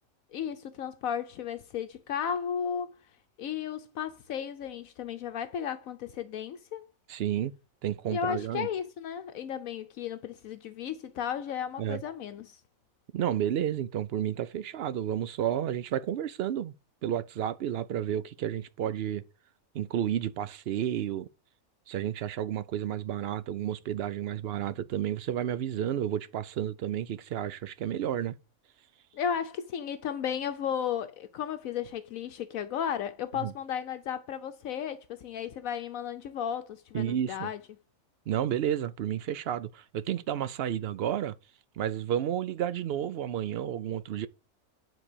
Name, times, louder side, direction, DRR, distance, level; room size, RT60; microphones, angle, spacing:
voice 1, 0.3-2.9 3.4-6.9 8.1-12.6 29.1-37.6, left 8 dB, 75° left, 1.1 m, -34 dB
voice 2, 7.1-7.5 7.8-8.7 11.8-12.0 13.1-16.7 17.0-19.2 19.7-21.3 21.9-28.4 33.4-33.5 36.9-37.5 38.3-41.3 41.8-44.3, right 10 dB, 60° right, 0.6 m, -31 dB
9.9 x 4.1 x 6.7 m
omnidirectional pair, 1.5 m